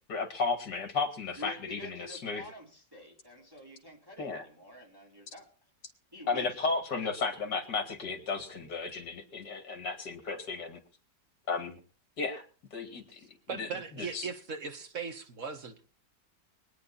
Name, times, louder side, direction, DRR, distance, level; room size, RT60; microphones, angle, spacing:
voice 1, 0.1-2.4 4.2-4.5 6.3-10.8 11.5-11.8 12.2-12.4 12.7-13.2 13.5-13.7 14.0-14.3, left 4 dB, 65° left, 3.0 m, -34 dB
voice 2, 1.4-5.5 6.1-7.1, left 1 dB, 10° right, 3.5 m, -48 dB
voice 3, 13.5-15.8, right 5 dB, 45° right, 1.9 m, -38 dB
24.0 x 9.5 x 4.2 m
omnidirectional pair, 1.9 m